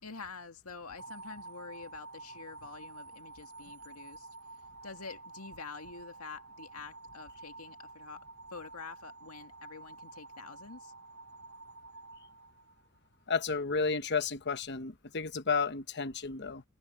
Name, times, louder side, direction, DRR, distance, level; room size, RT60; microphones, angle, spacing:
voice 1, 0.0-4.3 4.8-8.2 8.5-10.9, left 4 dB, 90° left, 2.0 m, -47 dB
sound 1, 1.0-13.1, right 3 dB, 70° right, 5.0 m, -50 dB
voice 2, 13.3-16.6, left 5 dB, 50° left, 1.1 m, -32 dB
head